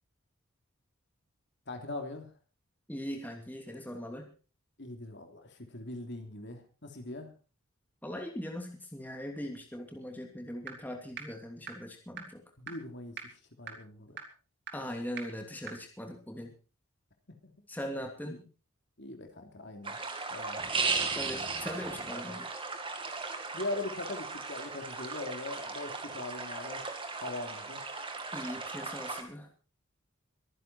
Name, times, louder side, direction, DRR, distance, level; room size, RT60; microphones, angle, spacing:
voice 1, 1.7-2.3 4.8-7.3 12.6-13.2 13.6-14.2 18.2-18.4 19.0-20.0 20.3-20.6 20.9-21.2 22.3-22.4 23.5-26.9 27.2-27.8, left 2 dB, 55° left, 5 dB, 3.3 m, -41 dB
voice 2, 2.9-4.3 8.0-12.4 14.7-16.5 17.7-18.4 21.2-22.5 28.3-29.5, equal, 10° left, 3 dB, 2.8 m, -40 dB
sound 1, 10.7-10.8 11.2-11.3 11.7-11.8 12.2-12.3 12.7-12.8 13.2-13.3 13.7-13.8 14.2-14.3 14.7-14.8 15.2-15.3 15.7-15.8, right 7 dB, 50° right, 3.2 m, -39 dB
sound 2, 19.8-29.2, right 4 dB, 25° right, 2.5 m, -36 dB
24.0 x 10.5 x 4.4 m, 0.36 s
head